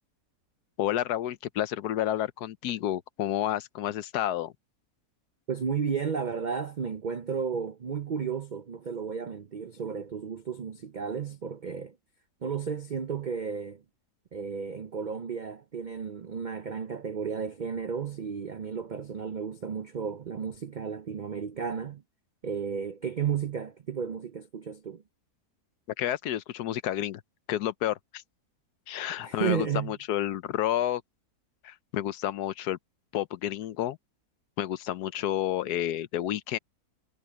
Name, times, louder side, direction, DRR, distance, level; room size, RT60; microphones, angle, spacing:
voice 1, 0.8-4.5 26.0-27.2 27.5-28.2 28.9-31.0 31.6-32.8 33.1-34.0 34.6-36.6, left 12 dB, 80° left, 1.2 m, -30 dB
voice 2, 5.5-12.0 12.4-13.8 14.3-22.0 22.4-25.0 29.2-29.9, right 6 dB, 75° right, 0.4 m, -33 dB
omnidirectional pair, 1.7 m